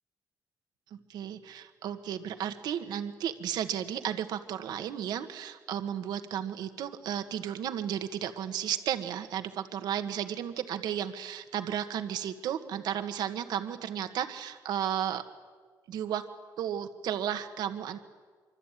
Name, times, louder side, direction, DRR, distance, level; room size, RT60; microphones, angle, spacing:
voice 1, 0.9-15.2 15.9-16.2 16.6-18.0, right 9 dB, 85° right, 8 dB, 1.8 m, -33 dB
25.5 x 25.0 x 9.3 m, 1.5 s
cardioid pair, 95°, 7 cm